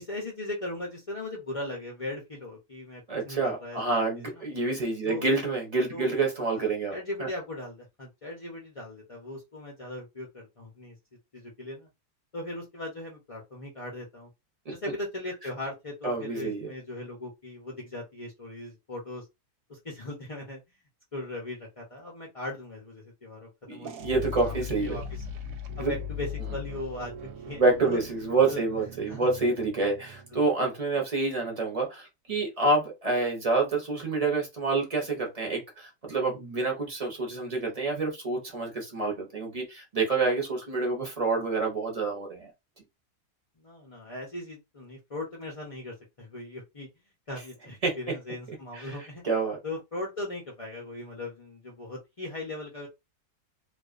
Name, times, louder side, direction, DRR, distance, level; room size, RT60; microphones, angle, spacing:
voice 1, 0.0-4.4 5.1-5.2 5.9-6.2 6.5-6.6 6.9-11.0 11.3-11.9 12.3-14.3 14.7-19.3 19.7-20.6 21.1-23.9 24.4-25.2 25.8-28.0 28.5-28.6 29.1-29.3 30.3-30.4 43.6-46.9 47.3-49.2 49.6-52.9, left 2 dB, 60° left, 0.3 m, -39 dB
voice 2, 3.1-7.0 14.7-14.8 16.0-16.7 23.7-24.9 25.8-25.9 27.6-42.5 47.8-47.9 48.7-49.0 49.2-49.6, right 3 dB, 40° right, 0.6 m, -27 dB
sound 1, 23.8-30.5, left 4 dB, 70° right, 0.9 m, -39 dB
2.4 x 2.4 x 2.4 m
omnidirectional pair, 1.6 m